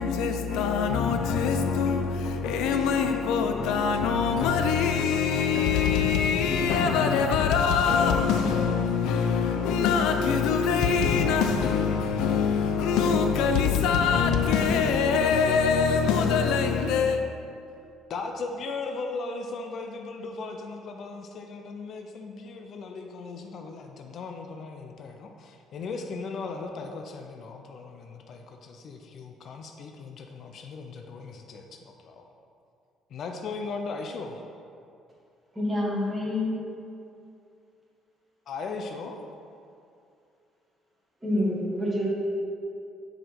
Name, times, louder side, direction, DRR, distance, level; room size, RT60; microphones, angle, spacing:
voice 1, 0.0-17.2, left 6 dB, 85° left, 0.6 m, -24 dB
voice 2, 18.1-32.3 33.1-34.4 38.5-39.2, left 4 dB, 40° left, 0.5 m, -37 dB
voice 3, 35.5-36.5 41.2-42.1, left 1 dB, 5° right, 1.7 m, -27 dB
7.8 x 5.0 x 5.8 m
cardioid pair, 175°, 0 cm